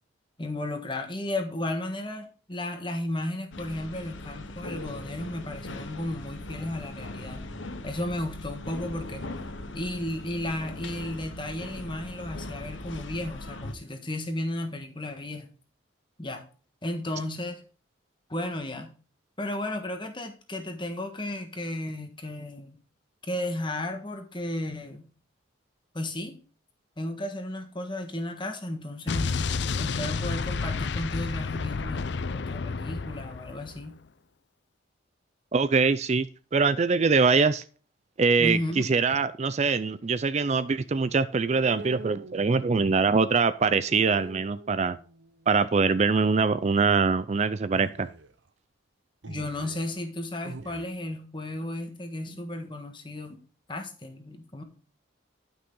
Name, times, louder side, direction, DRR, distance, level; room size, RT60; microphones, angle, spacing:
voice 1, 0.4-7.5 7.8-9.2 9.7-15.5 16.2-16.4 16.8-17.6 18.3-18.9 19.4-22.8 23.3-25.1 25.9-26.3 27.0-34.0 38.4-39.2 49.3-53.4 53.7-54.6, left 1 dB, 25° left, 5 dB, 1.4 m, -34 dB
sound 1, 3.5-13.7, left 2 dB, 75° left, 1.1 m, -40 dB
Explosion, 29.1-33.8, left 4 dB, 60° left, 0.5 m, -30 dB
voice 2, 35.5-36.3 36.5-37.6 38.2-45.0 45.5-48.1, right 4 dB, 35° right, 14 dB, 0.4 m, -23 dB
sound 2, 41.5-43.5 43.8-45.5 47.7-48.3 49.2-50.0 50.4-50.9, right 2 dB, 70° right, 0.9 m, -45 dB
11.5 x 6.0 x 3.8 m, 0.39 s
head